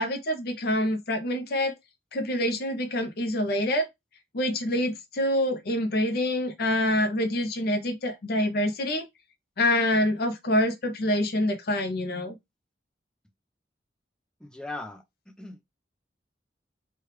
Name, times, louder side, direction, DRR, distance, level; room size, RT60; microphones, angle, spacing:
voice 1, 0.0-1.7 2.1-3.9 4.3-9.1 9.6-12.3, left 1 dB, 60° left, 0.6 m, -26 dB
voice 2, 14.4-15.0 15.4-15.6, left 2 dB, 5° left, 0.5 m, -38 dB
3.2 x 2.3 x 3.1 m
head